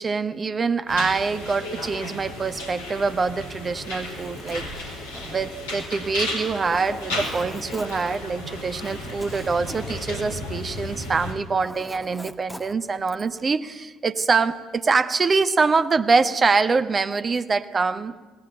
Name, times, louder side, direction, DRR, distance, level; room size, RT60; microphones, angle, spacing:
voice 1, 0.0-5.0 5.3-18.2, right 4 dB, 35° right, 12 dB, 1.4 m, -24 dB
sound 1, 0.9-11.3, left 1 dB, 75° left, 4.4 m, -34 dB
Zipper (clothing), 3.9-11.0 11.3-13.4, equal, ahead, 1.6 m, -43 dB
28.0 x 19.5 x 9.1 m, 1.3 s
figure-of-eight pair, 45°, 0 cm